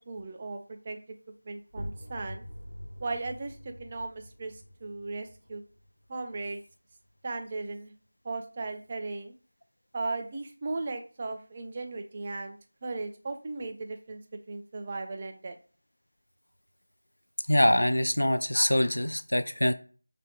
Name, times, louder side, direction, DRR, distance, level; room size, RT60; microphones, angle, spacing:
voice 1, 0.1-1.0 1.4-2.4 3.0-5.6 6.1-6.6 7.2-7.9 8.2-9.3 9.9-14.2 14.5-15.6, right 3 dB, 20° right, 6 dB, 0.3 m, -37 dB
sound 1, 1.7-7.2, equal, 85° right, 0.7 m, -45 dB
voice 2, 17.5-19.7, left 1 dB, 70° left, 10 dB, 0.3 m, -24 dB
2.6 x 2.1 x 3.6 m, 0.40 s
figure-of-eight pair, 170°, 0 cm